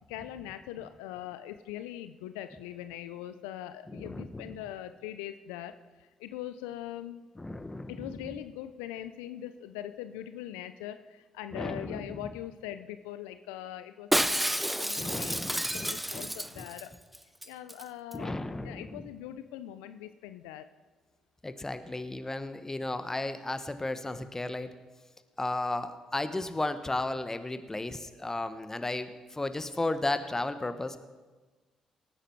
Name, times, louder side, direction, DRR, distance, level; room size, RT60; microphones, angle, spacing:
voice 1, 0.1-7.3 7.9-16.9 17.4-18.4 18.6-20.7, left 12 dB, 85° left, 11 dB, 0.5 m, -42 dB
voice 2, 3.9-4.6 7.4-8.1 11.5-12.0 15.0-16.6 18.1-19.0 21.4-24.7 25.4-31.0, left 2 dB, 20° left, 10 dB, 1.3 m, -34 dB
Shatter, 14.1-16.9 17.1-17.2 17.4-17.8 18.1-18.2, equal, 5° right, 0.5 m, -30 dB
19.0 x 9.1 x 4.6 m, 1.3 s
hypercardioid pair, 45°, 2 cm